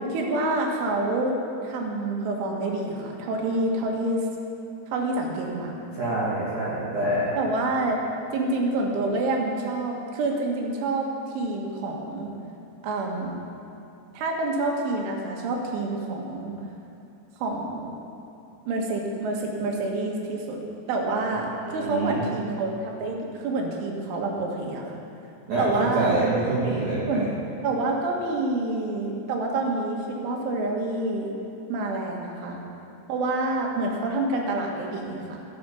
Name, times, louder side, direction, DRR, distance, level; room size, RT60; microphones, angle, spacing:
voice 1, 0.1-1.4 1.6-4.3 4.9-5.9 7.4-8.0 8.3-11.1 11.4-12.3 12.8-13.3 14.1-16.6 17.4-17.9 18.7-20.6 20.9-25.0 25.6-26.1 27.1-27.3 27.6-31.3 31.7-32.6 33.1-35.5, right 2 dB, 85° right, 0 dB, 4.0 m, -27 dB
voice 2, 5.9-7.3 21.6-22.2 25.5-27.3, right 2 dB, 50° right, -9 dB, 2.9 m, -26 dB
17.0 x 6.9 x 6.9 m, 2.7 s
omnidirectional pair, 5.4 m